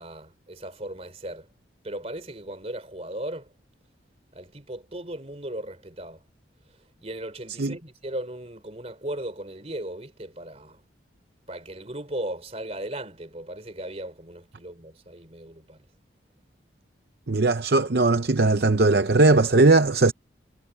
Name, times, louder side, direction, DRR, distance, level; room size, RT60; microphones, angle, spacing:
voice 1, 0.0-1.5 1.8-3.5 4.3-6.2 7.0-10.8 11.5-15.8, right 1 dB, 35° right, 3.6 m, -37 dB
voice 2, 17.3-20.1, right 3 dB, 55° right, 0.7 m, -19 dB
head